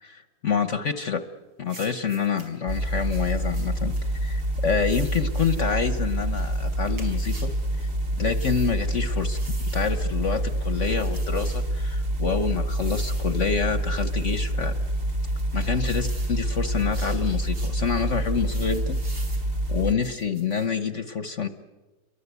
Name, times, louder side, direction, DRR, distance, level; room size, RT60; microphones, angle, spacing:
voice 1, 0.0-1.2 1.6-3.9 4.2-7.5 7.8-7.9 8.2-9.4 9.7-14.7 15.5-19.0 19.7-21.5, left 6 dB, 50° left, 10 dB, 1.1 m, -27 dB
sound 1, 1.7-2.5 3.1-4.0 4.8-5.7 6.4-7.6 8.3-8.8 9.3-10.0 10.8-11.7 12.7-13.5 13.9-14.5 15.1-16.4 16.8-17.8 18.4-19.5 20.0-20.7, right 2 dB, 85° right, 5.8 m, -46 dB
sound 2, 2.7-19.9, right 1 dB, 45° right, 2.9 m, -27 dB
29.5 x 23.0 x 8.2 m, 1.2 s
omnidirectional pair, 2.0 m